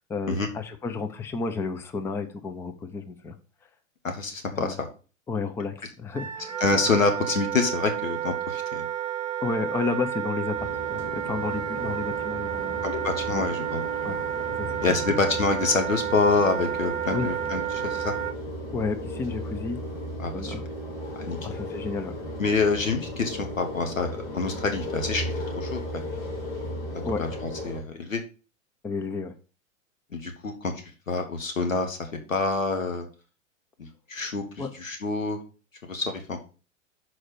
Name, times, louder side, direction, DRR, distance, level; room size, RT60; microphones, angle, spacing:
voice 1, 0.0-3.4 4.5-4.8 5.3-6.6 9.4-12.8 13.3-13.4 14.0-14.2 14.6-14.8 17.1-17.3 18.7-19.8 20.3-20.6 21.4-22.1 27.0-27.2 28.8-29.3 34.6-34.7, left 4 dB, 5° left, 7 dB, 0.4 m, -31 dB
voice 2, 4.0-4.9 6.6-8.8 12.8-14.1 14.8-18.1 20.2-20.5 21.2-21.4 22.4-24.1 24.3-25.2 25.5-25.8 27.2-28.2 30.1-30.7 31.1-32.0 32.3-33.1 33.8-35.4 35.8-36.4, left 4 dB, 75° left, 5 dB, 1.4 m, -27 dB
Wind instrument woodwind instrument, 6.1-18.3, right 10 dB, 75° right, 0.8 m, -31 dB
sound 1, 10.5-27.8, equal, 60° left, 3.2 m, -36 dB
6.3 x 4.4 x 6.0 m, 0.35 s
figure-of-eight pair, 95°, 40 cm